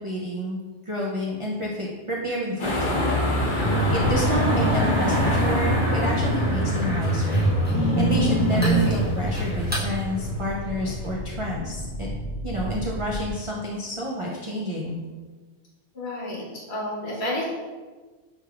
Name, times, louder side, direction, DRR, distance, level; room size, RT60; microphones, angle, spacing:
voice 1, 0.0-2.9 3.4-12.1 12.4-15.0, equal, 55° right, -3 dB, 0.3 m, -30 dB
sound 1, 2.6-11.1, left 1 dB, 45° left, 1.1 m, -27 dB
sound 2, 2.7-5.8 6.5-13.3, left 1 dB, 30° left, 0.3 m, -35 dB
sound 3, 3.6-9.9, right 1 dB, 10° right, 0.7 m, -24 dB
voice 2, 15.9-17.5, left 1 dB, 65° left, -5 dB, 1.3 m, -30 dB
5.1 x 3.3 x 2.3 m, 1.4 s
omnidirectional pair, 1.2 m